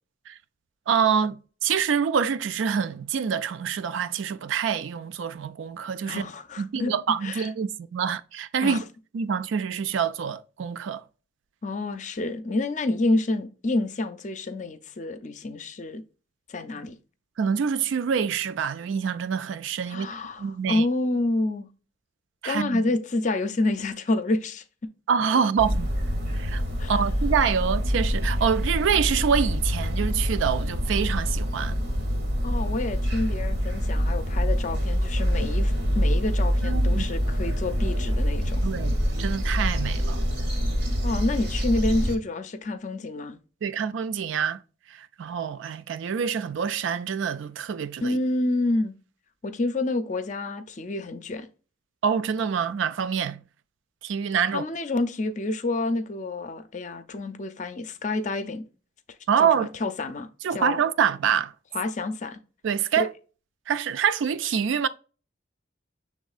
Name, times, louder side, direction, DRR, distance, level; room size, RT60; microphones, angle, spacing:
voice 1, 0.9-6.2 6.6-8.8 9.1-11.0 17.4-20.1 20.4-20.9 22.4-22.8 25.1-25.9 26.3-26.6 26.9-31.8 36.6-37.1 38.6-38.9 39.2-40.2 43.6-44.6 44.9-48.2 52.0-53.4 54.0-54.6 59.3-59.7 60.4-61.5 62.6-63.1 63.7-64.9, right 7 dB, 75° right, 0.4 m, -26 dB
voice 2, 6.1-6.9 7.2-7.5 8.6-8.8 11.6-16.0 16.5-17.0 19.9-21.7 22.4-24.6 26.8-27.0 32.4-38.7 41.0-43.4 48.0-48.9 49.4-51.5 54.5-58.6 59.4-60.8 61.7-62.4, left 2 dB, 40° left, 0.5 m, -28 dB
sound 1, 25.6-42.2, equal, 55° right, 0.9 m, -25 dB
6.2 x 3.6 x 2.4 m
head